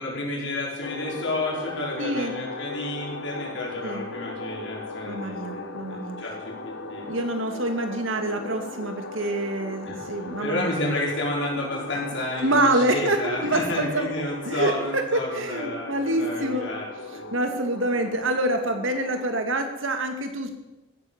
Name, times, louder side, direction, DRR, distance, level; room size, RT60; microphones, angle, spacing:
voice 1, 0.0-7.1 9.8-10.0 10.4-16.9 17.1-17.3, left 1 dB, 70° left, -3 dB, 5.3 m, -31 dB
sound 1, 0.8-19.4, left 3 dB, 85° left, 1.2 m, -38 dB
voice 2, 2.0-2.3 3.8-4.1 5.0-6.2 7.0-10.7 12.4-14.1 14.5-16.7 17.3-20.5, right 1 dB, 90° right, 5 dB, 2.2 m, -26 dB
15.0 x 9.7 x 7.3 m, 1.0 s
head